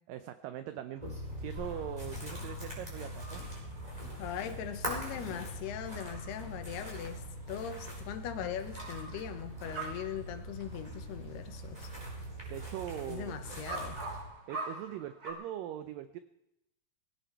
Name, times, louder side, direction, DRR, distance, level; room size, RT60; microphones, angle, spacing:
voice 1, 0.1-1.1 1.4-3.4 12.5-13.4 14.5-16.2, right 11 dB, 85° right, 11 dB, 1.9 m, -41 dB
sound 1, 1.0-14.2, equal, 10° right, 4.2 m, -42 dB
sound 2, 1.0-11.2 11.4-15.3, right 3 dB, 30° right, 1.9 m, -47 dB
voice 2, 3.9-11.9 13.1-14.0, left 9 dB, 75° left, 8 dB, 3.1 m, -40 dB
18.5 x 16.0 x 4.5 m, 0.87 s
omnidirectional pair, 4.7 m